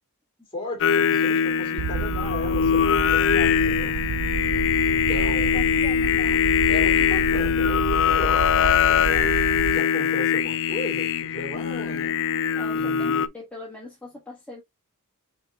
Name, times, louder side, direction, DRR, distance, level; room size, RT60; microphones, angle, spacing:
voice 1, 0.5-3.9 4.8-5.6 6.7-9.0 9.7-12.2 12.7-13.3, left 1 dB, 25° left, 2.6 m, -35 dB
Singing, 0.8-13.3, left 8 dB, 60° left, 0.4 m, -22 dB
sound 1, 1.8-9.8, right 7 dB, 90° right, 0.3 m, -30 dB
voice 2, 4.6-6.4 12.5-14.6, left 1 dB, 5° left, 1.4 m, -42 dB
6.0 x 3.7 x 2.3 m
head